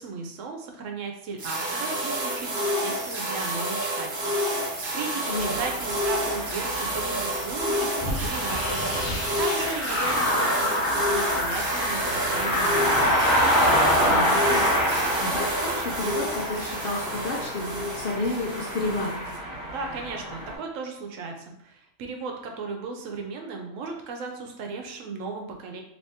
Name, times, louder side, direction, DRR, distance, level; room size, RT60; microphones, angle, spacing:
voice 1, 0.0-13.1 19.7-25.8, right 4 dB, 75° right, 3 dB, 1.0 m, -36 dB
sound 1, 1.4-19.4, equal, 50° right, 0.8 m, -29 dB
voice 2, 5.3-5.6 14.1-14.7 15.2-19.2, left 2 dB, 55° left, -2 dB, 0.7 m, -31 dB
sound 2, 5.3-20.5, equal, 30° left, 1.5 m, -29 dB
sound 3, 8.0-14.4, left 1 dB, 75° left, 1.2 m, -26 dB
3.4 x 2.9 x 2.8 m, 0.78 s
omnidirectional pair, 1.4 m